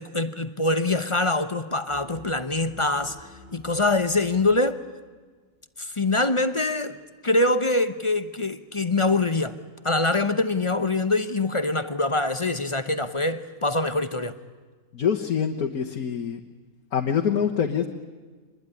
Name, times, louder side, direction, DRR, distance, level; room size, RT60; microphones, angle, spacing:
voice 1, 0.0-4.8 5.8-7.0 7.2-9.6 9.8-14.4, left 2 dB, 25° left, 0.7 m, -24 dB
sound 1, 1.9-4.6, left 1 dB, 5° right, 4.3 m, -48 dB
voice 2, 14.9-16.4 16.9-17.9, left 7 dB, 85° left, 1.7 m, -25 dB
25.5 x 21.0 x 9.8 m
omnidirectional pair, 1.5 m